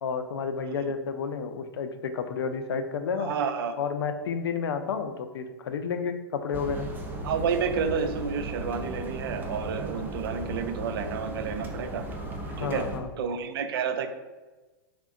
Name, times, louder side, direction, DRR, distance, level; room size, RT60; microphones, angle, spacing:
voice 1, 0.0-3.3 3.8-6.9 12.6-13.1, left 6 dB, 90° left, 8 dB, 0.4 m, -31 dB
voice 2, 3.1-3.7 7.2-12.0 12.6-12.9 13.2-14.1, right 6 dB, 75° right, 8 dB, 0.4 m, -30 dB
sound 1, 6.5-13.0, right 1 dB, 15° right, 0.4 m, -36 dB
3.4 x 2.2 x 3.6 m, 1.2 s
hypercardioid pair, 130°, 12 cm